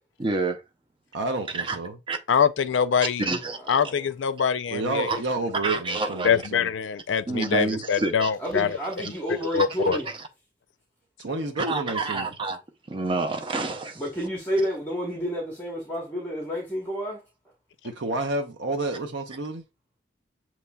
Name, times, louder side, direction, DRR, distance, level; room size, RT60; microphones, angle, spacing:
voice 1, 0.2-0.6 1.5-1.8 2.1-2.2 3.2-3.8 5.1-5.2 5.6-6.3 7.3-8.3 9.6-10.2 11.6-12.6 12.9-14.0, right 3 dB, 30° right, 0.5 m, -28 dB
voice 2, 1.1-1.9 4.7-6.7 11.2-12.3 17.8-19.6, right 2 dB, 75° right, 0.6 m, -30 dB
voice 3, 2.3-3.3 3.7-5.2 6.2-8.8 9.5-10.0, left 6 dB, 85° left, 0.4 m, -24 dB
voice 4, 3.6-4.1 8.4-10.1 14.0-17.2, equal, 10° left, 1.0 m, -30 dB
6.8 x 3.0 x 2.2 m
head